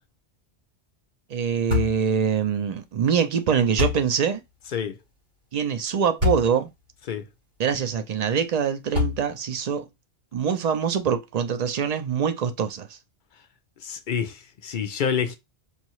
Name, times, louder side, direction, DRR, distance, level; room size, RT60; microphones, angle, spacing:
voice 1, 1.3-4.4 5.5-6.7 7.6-9.8 10.3-12.9, right 7 dB, 50° right, 0.5 m, -24 dB
sound 1, 1.7-2.0 3.8-4.1 6.2-6.5 7.1-7.2 8.9-9.4, left 4 dB, 90° right, 3.8 m, -24 dB
voice 2, 13.8-15.4, left 7 dB, 55° left, 0.6 m, -28 dB
5.3 x 2.7 x 3.0 m
omnidirectional pair, 1.2 m